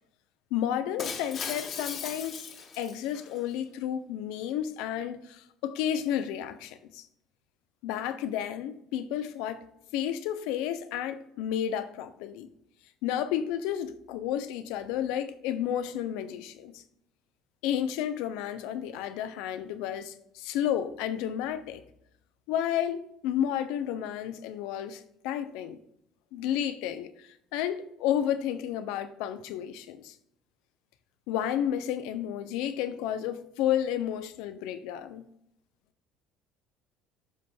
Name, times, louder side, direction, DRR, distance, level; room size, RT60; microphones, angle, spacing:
voice 1, 0.5-2.5 2.8-7.1 7.8-9.7 9.9-12.5 13.0-16.8 17.6-21.8 22.5-25.8 26.3-30.1 31.3-35.2, left 10 dB, 70° left, 0.6 m, -31 dB
Shatter, 1.0-3.4, left 6 dB, 50° left, 1.4 m, -38 dB
12.5 x 5.2 x 2.3 m
hypercardioid pair, 65°, 0 cm